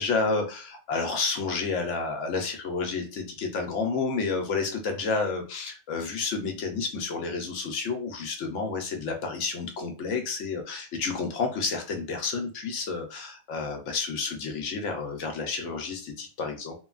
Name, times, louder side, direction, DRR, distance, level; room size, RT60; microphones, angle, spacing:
voice 1, 0.0-16.7, left 4 dB, 60° left, 4 dB, 0.8 m, -30 dB
3.1 x 2.2 x 2.3 m, 0.35 s
omnidirectional pair, 1.6 m